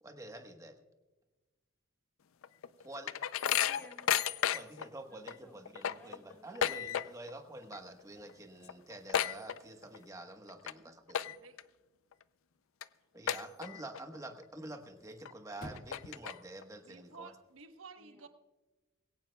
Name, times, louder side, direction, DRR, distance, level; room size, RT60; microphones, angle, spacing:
voice 1, 0.0-0.8 2.8-3.1 4.5-11.2 13.1-17.3, right 1 dB, 15° right, 5 dB, 1.2 m, -48 dB
sound 1, 2.4-4.9 5.3-5.4 5.7-7.4 7.6-8.0 8.3-8.4 8.6-10.0 10.5-10.7 11.1-11.6 12.1-12.2 12.8-12.9 13.3-14.0 14.4-14.5 15.3-15.4 15.7-16.6, left 9 dB, 80° left, 0.5 m, -33 dB
voice 2, 3.2-4.4 5.1-5.6 5.8-6.6 18.0-18.3, left 1 dB, 10° left, 0 dB, 2.3 m, -58 dB
Chirp tweet / Car / Slam, 7.8-17.8, equal, 40° left, 1.6 m, -59 dB
voice 3, 16.6-18.3, right 4 dB, 75° right, 7 dB, 1.2 m, -53 dB
21.5 x 17.5 x 2.3 m, 1.2 s
head